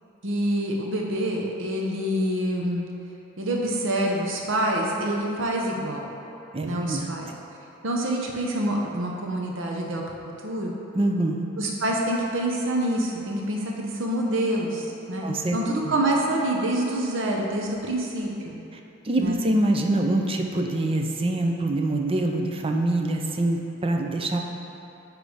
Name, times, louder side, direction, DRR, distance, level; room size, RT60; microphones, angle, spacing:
voice 1, 0.2-2.8 3.4-6.1 6.6-7.3 7.8-10.0 10.4-10.7 11.6-18.6 19.2-19.4, right 1 dB, 60° right, -1 dB, 0.8 m, -26 dB
voice 2, 6.5-7.2 11.0-11.5 15.2-15.6 15.8-15.9 19.0-24.4, right 1 dB, 25° right, 3 dB, 0.5 m, -25 dB
9.2 x 3.3 x 4.9 m, 2.8 s
head